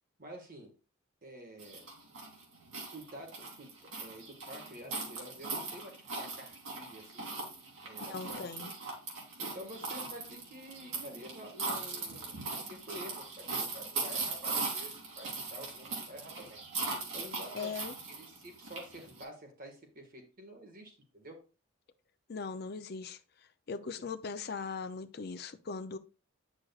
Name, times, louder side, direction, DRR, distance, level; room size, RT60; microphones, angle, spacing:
voice 1, 0.2-0.7 1.2-1.8 2.9-7.3 7.8-8.7 9.4-16.6 17.1-17.7 18.2-21.4 23.8-24.1, equal, 40° right, 1.7 m, -49 dB
sound 1, 1.6-19.2, right 3 dB, 75° right, 2.5 m, -39 dB
voice 2, 8.1-8.7 17.5-17.9 22.3-23.2 23.7-26.0, left 5 dB, 50° left, 0.5 m, -39 dB
8.7 x 6.3 x 2.4 m
head